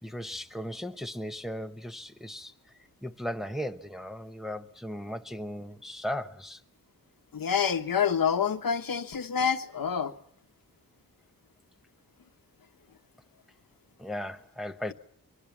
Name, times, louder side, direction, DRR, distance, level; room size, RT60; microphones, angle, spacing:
voice 1, 0.0-2.5 3.0-6.6 14.0-14.9, left 1 dB, ahead, 0.9 m, -37 dB
voice 2, 7.3-10.1, left 7 dB, 70° left, 1.2 m, -27 dB
23.5 x 22.5 x 7.2 m
wide cardioid pair, 75°, 35 cm